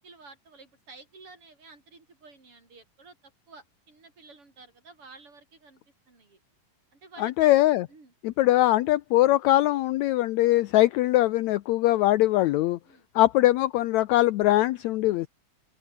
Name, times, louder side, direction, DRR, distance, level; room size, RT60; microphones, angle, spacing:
voice 1, 0.0-3.2 3.5-5.8 6.1-6.4 6.9-7.6 7.9-8.1 12.8-13.1, right 3 dB, 40° right, 6.5 m, -51 dB
voice 2, 7.2-7.9 8.2-12.8 13.1-15.3, left 16 dB, 80° left, 1.6 m, -22 dB
open air
omnidirectional pair, 4.0 m